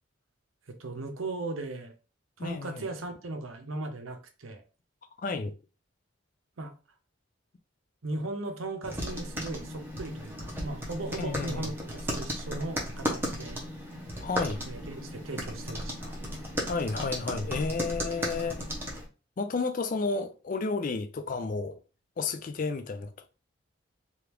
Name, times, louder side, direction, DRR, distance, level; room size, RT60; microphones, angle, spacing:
voice 1, 0.7-1.9 2.4-4.6 6.6-6.7 8.0-13.6 14.7-16.2, right 2 dB, 85° right, 0.7 m, -37 dB
voice 2, 2.4-2.8 5.2-5.5 11.2-11.7 14.2-14.6 16.7-18.7 19.4-21.8 22.2-23.1, left 4 dB, 40° left, 0.4 m, -31 dB
sound 1, 8.8-19.1, equal, 10° right, 0.7 m, -35 dB
3.4 x 2.4 x 3.0 m
head